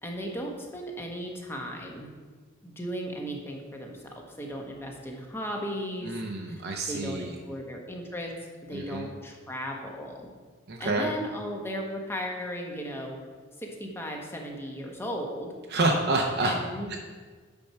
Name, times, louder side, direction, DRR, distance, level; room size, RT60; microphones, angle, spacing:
voice 1, 0.0-2.1 2.6-6.2 6.9-8.3 8.7-10.3 10.8-13.2 13.6-15.5 16.4-16.9, equal, 10° left, 1 dB, 1.1 m, -36 dB
voice 2, 6.1-7.3 8.7-9.1 10.7-11.1 15.7-16.6 16.9-17.0, right 2 dB, 50° right, 1 dB, 0.7 m, -28 dB
8.7 x 4.5 x 5.7 m, 1.5 s
head